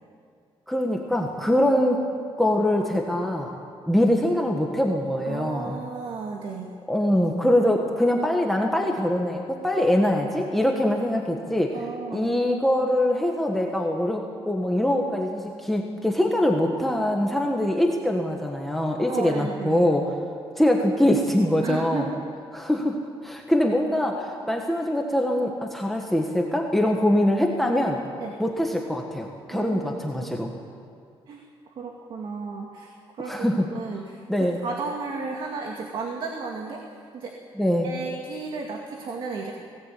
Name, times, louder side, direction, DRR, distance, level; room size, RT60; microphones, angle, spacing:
voice 1, 0.7-2.0 2.4-3.6 3.9-5.8 6.9-11.8 12.1-20.0 20.6-22.1 22.5-23.0 23.2-28.0 28.4-30.5 33.2-33.7 34.3-34.6 37.6-37.9, left 1 dB, ahead, 0 dB, 1.6 m, -23 dB
voice 2, 5.2-6.7 11.7-12.3 19.1-19.8 21.6-22.3 28.2-28.4 29.5-30.6 31.3-31.4 31.7-32.9 33.2-33.4 33.7-37.4 37.8-39.5, right 4 dB, 60° right, 1 dB, 2.3 m, -34 dB
20.0 x 17.5 x 8.5 m, 2.2 s
cardioid pair, 145°, 10 cm